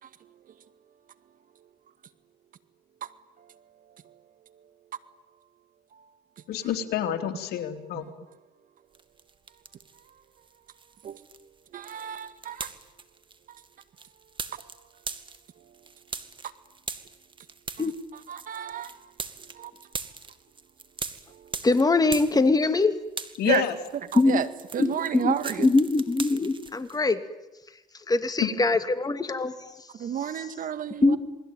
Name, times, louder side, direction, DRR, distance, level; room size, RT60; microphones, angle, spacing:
voice 1, 6.5-8.1 23.4-23.7 28.4-28.5, left 10 dB, 75° left, 5 dB, 3.3 m, -27 dB
sound 1, 9.0-10.1 10.4-22.8 23.1-27.0, right 4 dB, 30° right, 2.3 m, -40 dB
voice 2, 11.7-12.7 13.5-13.6 14.5-14.6 17.8-18.9 19.5-19.7 21.3-21.6 23.4-23.6 23.9-25.7 28.6-28.7 30.0-31.2, right 9 dB, 55° right, 12 dB, 2.0 m, -32 dB
voice 3, 21.6-22.9 24.1-24.4 24.8-27.2 28.1-29.8 31.0-31.2, left 3 dB, 25° left, 9 dB, 2.6 m, -23 dB
28.5 x 21.0 x 9.3 m, 1.0 s
cardioid pair, 85°, 16 cm